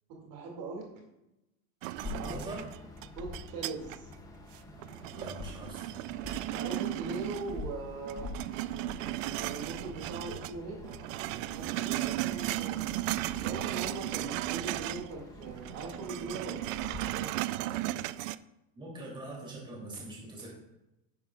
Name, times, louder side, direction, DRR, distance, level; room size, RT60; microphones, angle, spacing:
voice 1, 0.1-0.9 2.2-2.4 3.2-4.1 6.5-8.3 9.2-10.8 11.5-12.8 13.4-16.6 17.1-17.3, right 3 dB, 45° right, -1 dB, 2.3 m, -40 dB
sound 1, 1.8-4.1 4.5-7.8 8.1-10.6 10.8-15.1 15.4-18.4, right 16 dB, 70° right, 0.5 m, -35 dB
sound 2, 2.0-17.0, left 3 dB, 10° left, 0.6 m, -47 dB
voice 2, 2.0-2.7 5.0-5.9 18.7-20.5, right 1 dB, 10° right, -4 dB, 2.9 m, -43 dB
11.0 x 9.6 x 2.4 m, 0.90 s
supercardioid pair, 160°, 41 cm